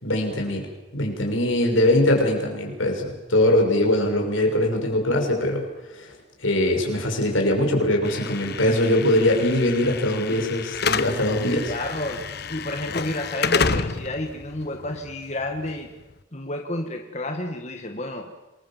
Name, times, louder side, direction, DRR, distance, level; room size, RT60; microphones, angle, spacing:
voice 1, 0.0-0.7 0.9-5.6 5.9-6.1 6.4-11.7, left 1 dB, 80° left, 2 dB, 6.1 m, -22 dB
Slam / Alarm, 8.0-16.1, left 5 dB, 55° left, 1.0 m, -30 dB
voice 2, 11.6-15.9 16.3-18.3, left 1 dB, 35° left, 4 dB, 1.8 m, -31 dB
26.5 x 21.0 x 7.4 m, 1.0 s
head